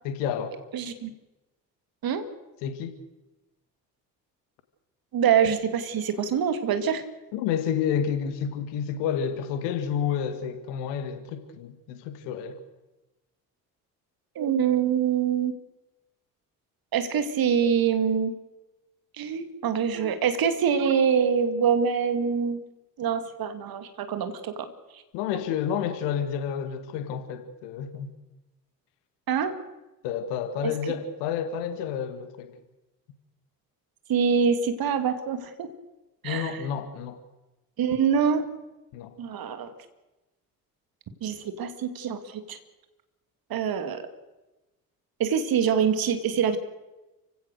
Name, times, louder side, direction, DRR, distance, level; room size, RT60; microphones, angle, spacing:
voice 1, 0.0-0.6 2.6-2.9 7.3-12.6 25.1-28.1 30.0-32.5 36.2-37.2 38.9-39.1, left 8 dB, 60° left, 2.2 m, -30 dB
voice 2, 0.7-1.1 2.0-2.2 5.1-7.0 14.4-15.5 16.9-18.3 19.2-22.6 23.0-25.0 29.3-29.6 30.6-30.7 34.1-35.7 36.2-36.6 37.8-38.5 39.2-39.7 41.2-42.6 43.5-44.1 45.2-46.6, right 7 dB, 50° right, 2.5 m, -25 dB
29.5 x 16.5 x 6.6 m
figure-of-eight pair, 45°, 46 cm